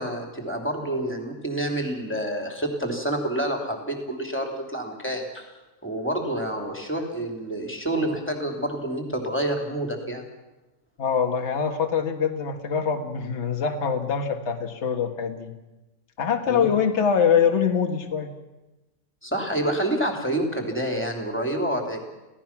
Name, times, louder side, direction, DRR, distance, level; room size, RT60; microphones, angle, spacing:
voice 1, 0.0-5.5 5.8-10.2 16.5-16.7 19.2-22.0, right 1 dB, 5° left, 2 dB, 3.0 m, -28 dB
voice 2, 11.0-15.5 16.2-18.3, left 7 dB, 45° left, 5 dB, 1.8 m, -24 dB
27.0 x 17.0 x 6.0 m, 1.1 s
omnidirectional pair, 1.8 m